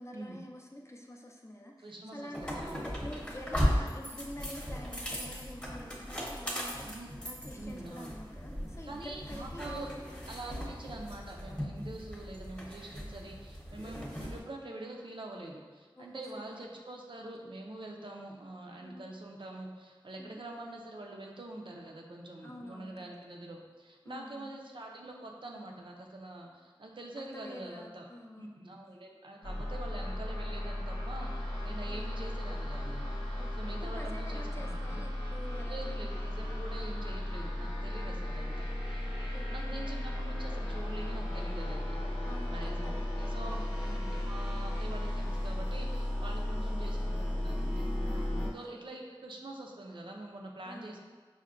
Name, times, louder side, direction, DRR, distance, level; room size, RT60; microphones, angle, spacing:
voice 1, 0.0-1.7 2.1-10.7 16.0-16.3 18.8-19.1 20.2-20.4 22.4-23.1 24.1-24.5 27.2-28.5 31.9-32.0 33.4-36.0 39.3-39.8 42.2-43.1 43.3-43.7 48.4-48.8 50.6-51.0, left 1 dB, 30° left, 0 dB, 0.4 m, -47 dB
voice 2, 1.8-2.9 6.8-7.1 7.5-8.2 8.9-9.9 10.3-28.1 28.4-35.0 35.6-38.7 39.0-42.0 42.5-47.9 48.5-51.0, right 2 dB, 70° right, 0 dB, 0.5 m, -45 dB
sound 1, 2.3-14.4, equal, 10° left, 0.8 m, -37 dB
sound 2, 29.4-48.5, left 1 dB, 90° left, 0.6 m, -35 dB
5.6 x 2.1 x 2.4 m, 1.4 s
wide cardioid pair, 45°, 9 cm